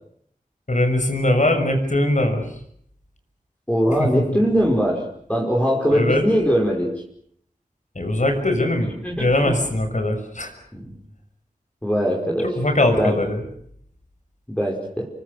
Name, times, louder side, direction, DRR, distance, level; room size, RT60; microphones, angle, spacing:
voice 1, 0.7-2.4 4.0-4.4 5.9-6.2 7.9-10.5 12.6-13.4, left 1 dB, 55° left, 6 dB, 6.5 m, -21 dB
voice 2, 3.7-5.0 5.3-7.0 9.0-9.6 10.7-10.9 11.8-12.5 13.0-13.2 14.5-15.1, equal, 10° left, -2 dB, 5.2 m, -21 dB
29.0 x 24.0 x 6.8 m, 0.67 s
wide cardioid pair, 65°, 15 cm